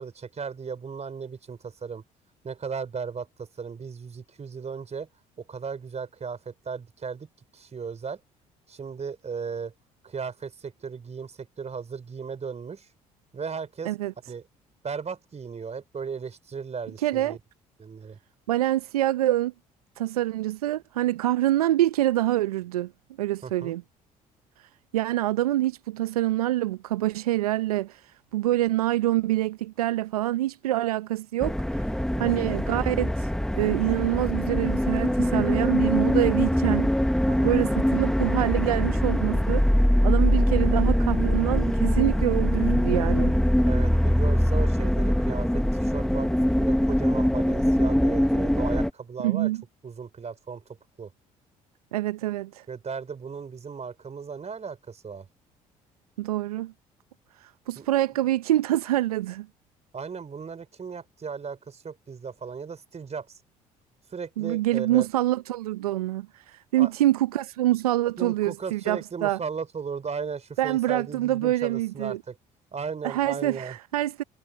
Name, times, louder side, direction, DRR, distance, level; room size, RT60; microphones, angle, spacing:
voice 1, 0.0-2.0 2.4-5.1 5.4-7.3 7.5-8.2 8.7-9.7 10.0-12.9 13.3-13.9 14.3-14.4 14.8-17.4 17.8-18.2 23.4-23.7 32.2-32.4 37.3-37.6 43.6-49.5 49.8-50.6 51.0-51.1 52.7-55.3 57.8-57.9 59.9-63.4 64.1-65.1 66.8-66.9 68.2-72.4 72.7-73.8, right 5 dB, 35° right, 4.7 m, -36 dB
voice 2, 17.0-17.4 18.5-19.5 20.0-22.9 23.2-23.8 24.9-28.0 28.3-31.8 32.2-33.3 33.5-36.9 37.4-39.6 40.0-43.3 49.2-49.6 51.9-52.6 56.2-56.7 57.4-59.5 64.4-69.4 70.6-72.2 73.0-74.2, right 14 dB, 85° right, 0.9 m, -26 dB
sound 1, 31.4-48.9, equal, 5° left, 1.8 m, -23 dB
hypercardioid pair, 55°, 19 cm